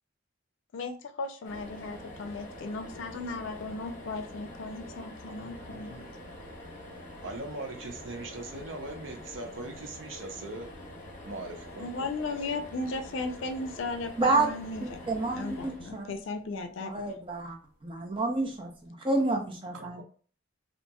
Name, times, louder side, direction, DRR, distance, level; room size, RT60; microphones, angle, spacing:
voice 1, 0.7-6.0 11.8-15.0 15.3-16.9, left 3 dB, 80° left, 7 dB, 0.4 m, -36 dB
sound 1, 1.4-16.7 18.4-18.6 18.9-19.0, left 1 dB, 40° left, 0.7 m, -45 dB
voice 2, 7.2-10.7 11.2-12.2 19.7-20.0, right 2 dB, 80° right, 3 dB, 0.6 m, -40 dB
voice 3, 14.8-16.1 16.5-17.6 17.8-20.0, right 2 dB, 25° right, 2 dB, 0.6 m, -29 dB
2.8 x 2.5 x 2.2 m, 0.42 s
head